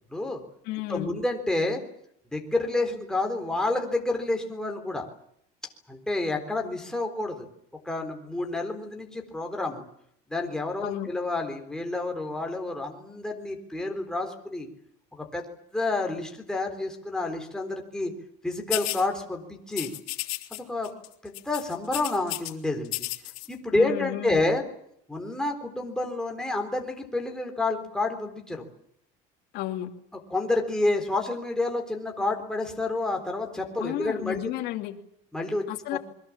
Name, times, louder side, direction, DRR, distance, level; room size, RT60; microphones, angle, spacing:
voice 1, 0.1-0.4 0.9-1.8 2.3-5.1 5.9-7.5 7.8-9.8 10.3-14.7 15.1-15.5 15.7-18.1 18.4-19.9 20.5-20.9 21.2-22.9 23.5-24.6 25.1-28.7 30.3-34.5 35.3-35.6, left 2 dB, 5° left, 2 dB, 3.9 m, -29 dB
voice 2, 0.6-1.2 10.8-11.1 23.7-24.4 29.5-29.9 33.8-35.0 35.7-36.0, left 14 dB, 55° left, 2 dB, 2.7 m, -32 dB
sound 1, 18.7-19.0 19.7-20.6 20.8-21.1 21.3-22.5 22.9-23.5, left 21 dB, 85° left, 3.1 m, -32 dB
28.5 x 22.5 x 7.4 m, 0.70 s
cardioid pair, 160°, 19 cm